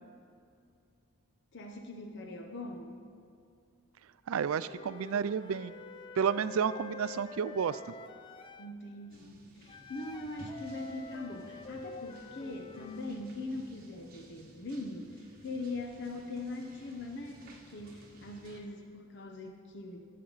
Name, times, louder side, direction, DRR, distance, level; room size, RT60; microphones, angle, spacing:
voice 1, 1.5-3.0 8.6-20.1, left 2 dB, 55° left, 3 dB, 0.8 m, -41 dB
voice 2, 4.3-5.7 6.2-7.8, right 7 dB, 75° right, 15 dB, 0.4 m, -31 dB
Wind instrument woodwind instrument, 4.6-8.7 9.7-13.0, left 3 dB, 25° left, 0.4 m, -47 dB
sound 1, 9.1-18.6, right 1 dB, 45° right, 1.3 m, -56 dB
16.0 x 7.6 x 4.0 m, 2.4 s
head